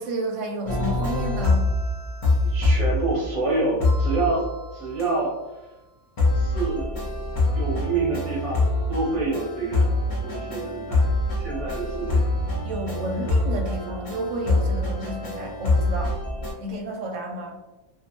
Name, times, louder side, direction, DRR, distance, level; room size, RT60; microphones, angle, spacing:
voice 1, 0.0-1.7 12.6-16.1 16.6-17.6, right 1 dB, 70° right, 1 dB, 0.8 m, -31 dB
sound 1, 0.7-3.5 3.8-5.1 6.2-16.5, left 2 dB, 50° left, 0.4 m, -25 dB
voice 2, 2.5-4.4 4.7-5.3 6.3-7.0 7.5-9.9 10.2-11.1 11.4-12.3, right 3 dB, 35° right, -4 dB, 0.6 m, -27 dB
2.3 x 2.2 x 2.8 m, 1.1 s
omnidirectional pair, 1.5 m